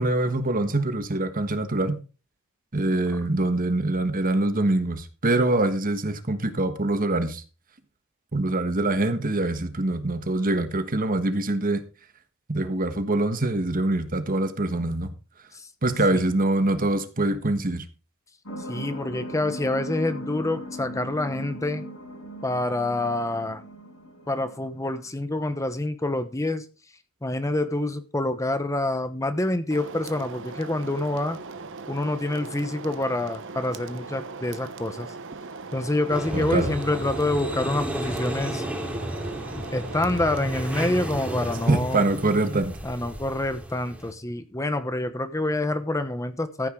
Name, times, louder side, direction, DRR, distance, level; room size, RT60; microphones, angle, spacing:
voice 1, 0.0-2.0 2.7-7.4 8.3-11.8 12.5-15.1 15.8-17.8 36.3-36.7 41.7-42.7, right 2 dB, 40° right, 1.4 m, -24 dB
sound 1, 18.5-25.5, left 1 dB, 80° left, 4.6 m, -38 dB
voice 2, 18.6-21.8 22.4-23.6 24.3-26.6 27.2-31.4 31.9-35.1 35.7-38.6 39.5-42.0 42.8-46.7, left 2 dB, 15° left, 0.9 m, -27 dB
sound 2, 29.7-41.7, right 4 dB, 60° right, 1.0 m, -39 dB
sound 3, 36.1-44.1, right 1 dB, 5° right, 2.5 m, -33 dB
14.5 x 9.2 x 3.8 m
head